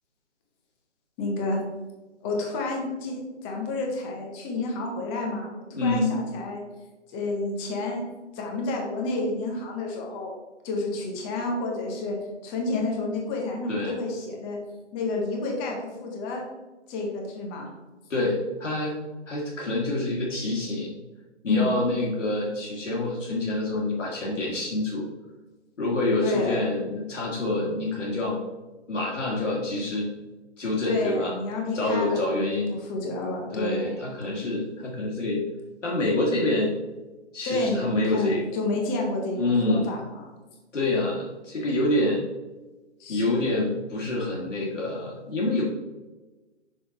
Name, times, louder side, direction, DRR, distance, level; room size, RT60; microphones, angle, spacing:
voice 1, 1.2-1.6 2.2-6.6 7.1-8.0 8.3-10.3 10.6-12.2 12.4-14.6 14.9-16.4 16.9-17.7 21.5-21.8 26.2-26.6 30.8-34.0 37.4-40.3 43.0-43.4, left 2 dB, 10° left, 0 dB, 0.6 m, -30 dB
voice 2, 5.7-6.1 13.7-13.9 18.1-18.9 19.3-20.9 21.4-25.1 25.8-28.4 28.9-30.1 30.6-31.4 31.7-32.8 33.5-35.4 35.8-36.7 37.3-38.4 39.4-39.9 40.7-42.2 43.1-45.6, left 2 dB, 85° left, -4 dB, 1.9 m, -26 dB
6.1 x 5.2 x 4.0 m, 1.2 s
hypercardioid pair, 150°, 36 cm